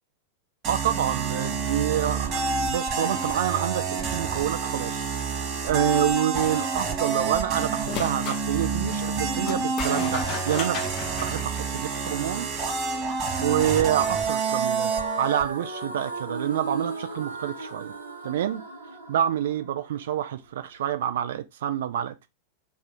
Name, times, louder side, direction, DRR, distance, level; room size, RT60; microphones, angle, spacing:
sound 1, 0.6-15.5, right 5 dB, 30° right, 0.8 m, -28 dB
voice 1, 0.7-5.1 5.6-10.8 11.2-12.5 13.4-14.9 15.2-17.9 18.2-18.6 19.1-22.3, right 11 dB, 60° right, 0.3 m, -27 dB
sound 2, 7.9-8.4 9.4-12.1, left 7 dB, 35° left, 0.5 m, -35 dB
sound 3, 13.4-21.4, right 3 dB, 80° right, 0.8 m, -37 dB
2.4 x 2.4 x 4.0 m
figure-of-eight pair, 90°, 0 cm